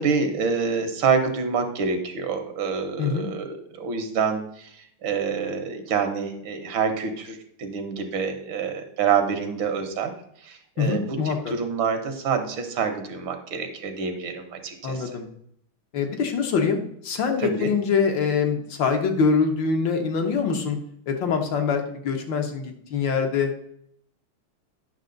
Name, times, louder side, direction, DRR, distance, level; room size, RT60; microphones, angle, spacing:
voice 1, 0.0-10.1 10.4-15.1 17.4-17.7, right 5 dB, 70° right, 7 dB, 1.8 m, -27 dB
voice 2, 3.0-3.3 10.8-11.5 14.8-15.3 15.9-20.8 21.1-23.5, left 5 dB, 65° left, 4 dB, 1.6 m, -24 dB
9.6 x 6.2 x 3.8 m, 0.70 s
omnidirectional pair, 2.3 m